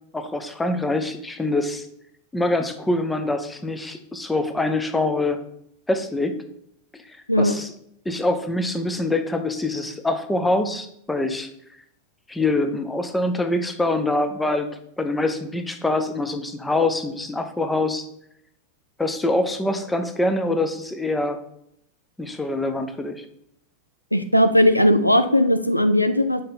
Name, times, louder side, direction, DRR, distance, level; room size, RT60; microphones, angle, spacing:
voice 1, 0.1-1.9 2.3-5.4 5.9-6.3 6.9-7.7 8.0-11.5 12.3-14.7 15.0-18.1 19.0-21.4 22.2-23.3, left 2 dB, 10° left, 7 dB, 0.7 m, -24 dB
voice 2, 24.1-26.4, left 1 dB, 90° left, 10 dB, 0.4 m, -18 dB
5.6 x 4.3 x 5.3 m, 0.73 s
figure-of-eight pair, 90°, 0 cm